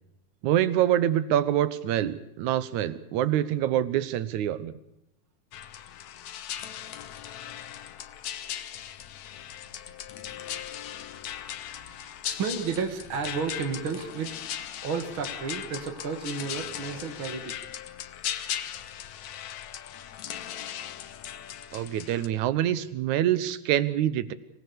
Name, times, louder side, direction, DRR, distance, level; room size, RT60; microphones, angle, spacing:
voice 1, 0.4-4.7 21.7-24.3, right 11 dB, 75° right, 15 dB, 2.4 m, -25 dB
sound 1, 5.5-22.3, left 11 dB, 70° left, 2.3 m, -38 dB
voice 2, 11.8-14.4 14.8-17.6, right 5 dB, 45° right, 6 dB, 2.3 m, -32 dB
25.5 x 18.5 x 7.0 m, 0.81 s
omnidirectional pair, 3.5 m